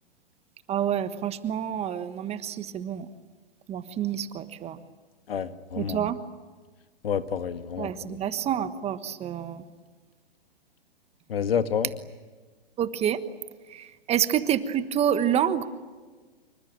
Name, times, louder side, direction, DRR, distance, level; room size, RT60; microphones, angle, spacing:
voice 1, 0.7-3.1 3.7-4.8 5.8-6.2 7.8-9.6 12.8-13.2 13.7-15.7, right 9 dB, 20° right, 12 dB, 1.3 m, -28 dB
voice 2, 5.3-6.0 7.0-8.2 11.3-11.9, left 7 dB, 70° left, 10 dB, 1.7 m, -29 dB
26.5 x 24.5 x 8.9 m, 1.4 s
hypercardioid pair, 125°, 31 cm